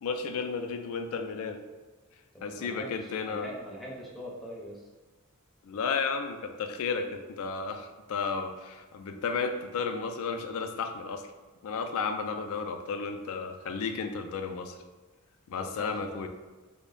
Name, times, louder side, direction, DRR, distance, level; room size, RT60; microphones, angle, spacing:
voice 1, 0.0-1.6 2.4-3.5 5.6-11.3 11.6-14.8 15.5-16.3, left 5 dB, 65° left, 6 dB, 0.3 m, -33 dB
voice 2, 2.3-4.8 15.6-16.2, equal, ahead, -4 dB, 0.6 m, -43 dB
3.4 x 2.1 x 3.8 m, 1.3 s
head